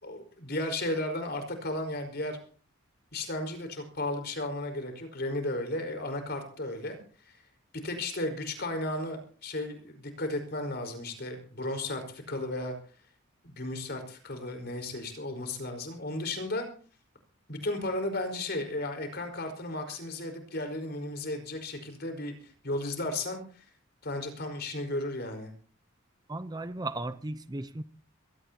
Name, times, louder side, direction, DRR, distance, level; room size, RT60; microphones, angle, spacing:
voice 1, 0.0-2.4 3.1-7.0 7.2-7.4 7.7-12.7 13.4-16.7 17.5-23.6 24.0-25.5, left 1 dB, 50° left, 4.9 m, -34 dB
voice 2, 26.3-27.8, right 2 dB, 20° right, 0.7 m, -35 dB
23.0 x 17.5 x 2.9 m
head